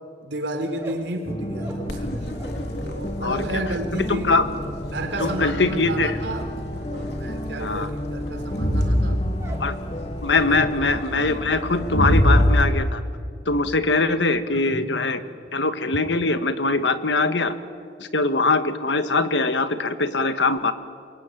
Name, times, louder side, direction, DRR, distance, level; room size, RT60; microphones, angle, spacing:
voice 1, 0.2-2.3 2.8-4.5 4.9-6.5 6.9-9.4 10.1-10.6 14.5-14.9, right 1 dB, 85° right, 6 dB, 3.9 m, -32 dB
sound 1, 0.7-2.7 3.0-9.8 10.1-10.6 10.9-11.4, right 1 dB, 15° right, 3.2 m, -42 dB
sound 2, 1.3-11.0, equal, 30° left, 1.0 m, -33 dB
Crowd, 1.9-12.6, equal, 65° left, 3.6 m, -26 dB
voice 2, 3.2-3.6 3.9-4.5 5.2-6.2 7.6-7.9 9.6-9.7 10.2-13.0 13.4-15.2 15.5-17.6 18.0-20.7, left 3 dB, 85° left, 10 dB, 1.6 m, -22 dB
27.0 x 23.0 x 9.4 m, 2.2 s
head